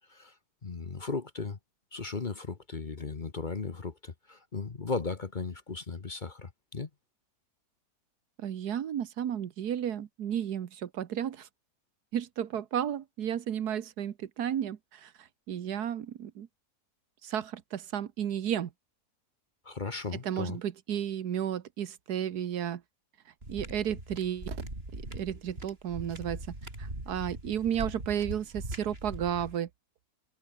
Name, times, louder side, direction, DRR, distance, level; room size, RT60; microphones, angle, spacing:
voice 1, 0.6-1.6 1.9-6.9 19.6-20.6, left 4 dB, 35° left, 1.2 m, -36 dB
voice 2, 8.4-11.5 12.1-15.1 15.5-16.5 17.2-18.7 20.2-22.8 23.5-24.6 24.9-26.4 26.8-29.7, right 9 dB, 80° right, 1.6 m, -33 dB
sound 1, 23.4-29.6, right 1 dB, 35° right, 6.2 m, -41 dB
omnidirectional pair, 1.7 m